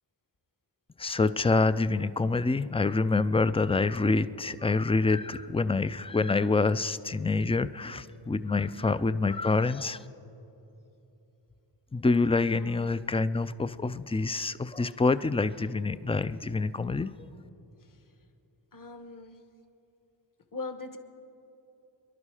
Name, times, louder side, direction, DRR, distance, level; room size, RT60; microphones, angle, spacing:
voice 1, 1.0-10.0 11.9-17.1, left 3 dB, 15° left, 14 dB, 0.3 m, -26 dB
voice 2, 12.5-13.0 18.7-19.4 20.5-21.0, left 3 dB, 40° left, 8 dB, 1.2 m, -41 dB
25.0 x 11.5 x 4.9 m, 2.9 s
wide cardioid pair, 70°, 49 cm